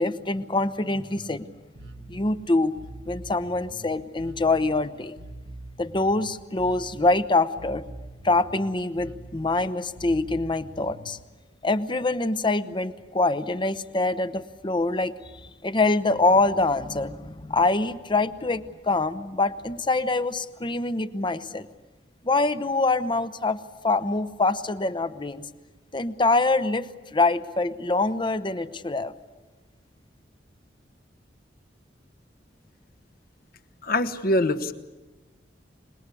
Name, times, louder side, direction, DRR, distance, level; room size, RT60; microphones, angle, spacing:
voice 1, 0.0-1.5 2.1-2.7 3.1-5.1 5.8-7.8 8.2-11.2 11.6-15.1 15.6-21.7 22.2-23.6 23.8-25.5 25.9-29.1, left 2 dB, 25° left, 12 dB, 0.9 m, -25 dB
Bass guitar, 1.8-11.2, right 1 dB, 65° right, 1.8 m, -44 dB
voice 2, 33.8-34.7, left 1 dB, 55° left, 8 dB, 1.2 m, -23 dB
26.5 x 20.5 x 8.4 m, 1.2 s
head